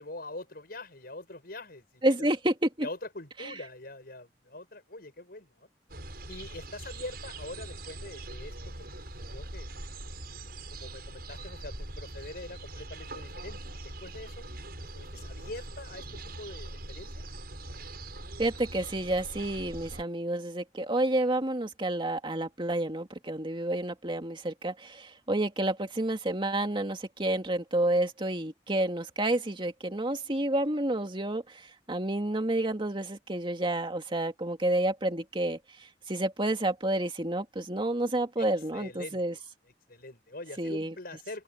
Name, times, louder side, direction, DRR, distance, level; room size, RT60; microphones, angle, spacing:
voice 1, 0.0-2.3 2.8-5.7 6.3-8.5 9.2-9.7 10.7-14.4 14.9-17.2 38.4-38.5 38.7-39.2 39.9-41.4, left 2 dB, 60° left, 6.4 m, -44 dB
voice 2, 2.0-2.9 3.4-3.5 18.4-39.3 40.6-40.9, right 1 dB, 30° right, 2.3 m, -30 dB
sound 1, 5.9-20.0, right 2 dB, 60° right, 7.4 m, -42 dB
open air
head